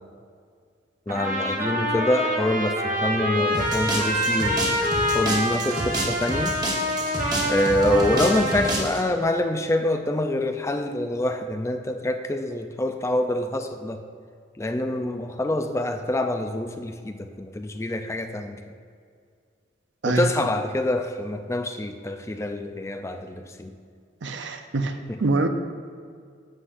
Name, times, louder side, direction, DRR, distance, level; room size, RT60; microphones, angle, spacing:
voice 1, 1.1-4.6 5.1-6.6 7.4-14.0 14.6-18.6 20.1-23.7 25.1-25.2, left 1 dB, 15° left, 6 dB, 0.4 m, -26 dB
Trumpet, 1.1-8.8, equal, 45° right, 1.2 m, -26 dB
sound 1, 3.5-9.0, right 1 dB, 20° right, 1.2 m, -30 dB
voice 2, 24.2-25.5, right 2 dB, 70° right, 7 dB, 0.6 m, -25 dB
11.5 x 8.2 x 2.5 m, 2.1 s
head